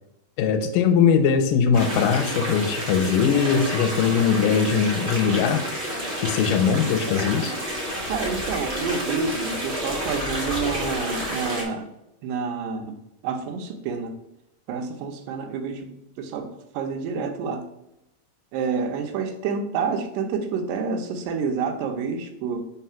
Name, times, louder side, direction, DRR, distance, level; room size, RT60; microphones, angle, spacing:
voice 1, 0.4-5.6 6.2-7.5, left 6 dB, 85° left, 7 dB, 2.3 m, -21 dB
sound 1, 1.7-11.6, equal, 70° right, 0.6 m, -30 dB
voice 2, 8.1-11.9 12.2-13.0 13.2-14.1 14.7-15.9 16.2-17.6 18.5-22.6, right 5 dB, 85° right, 4 dB, 2.5 m, -28 dB
4.7 x 4.0 x 5.6 m, 0.86 s
omnidirectional pair, 3.8 m